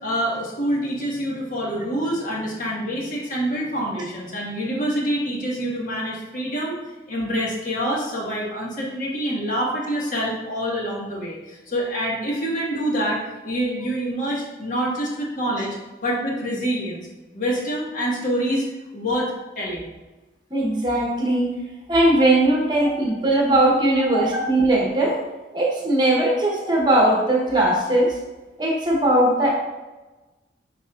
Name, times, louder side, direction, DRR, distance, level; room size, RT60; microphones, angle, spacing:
voice 1, 0.0-6.7 7.1-13.2 13.4-17.1 17.3-18.6 18.9-19.9 22.8-22.9 24.1-24.2 24.6-24.7 26.6-26.7, equal, 45° left, -4 dB, 1.7 m, -26 dB
voice 2, 20.5-21.5 21.9-25.2 25.5-28.2 28.6-29.5, right 1 dB, 25° right, -2 dB, 1.1 m, -19 dB
8.1 x 5.3 x 2.5 m, 1.1 s
head